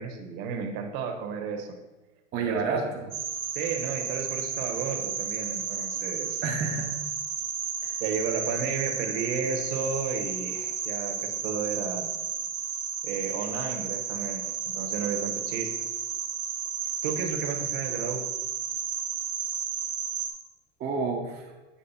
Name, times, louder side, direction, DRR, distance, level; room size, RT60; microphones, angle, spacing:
voice 1, 0.0-1.8 2.5-2.9 3.5-6.4 8.0-12.1 13.0-15.9 17.0-18.3, right 5 dB, 45° right, 4 dB, 1.1 m, -33 dB
voice 2, 2.3-3.0 6.4-6.9 7.8-8.0 20.8-21.5, right 4 dB, 25° right, -1 dB, 0.6 m, -29 dB
sound 1, 3.1-20.3, right 7 dB, 80° right, 1.5 m, -32 dB
8.5 x 3.3 x 5.5 m, 1.1 s
supercardioid pair, 140°, 38 cm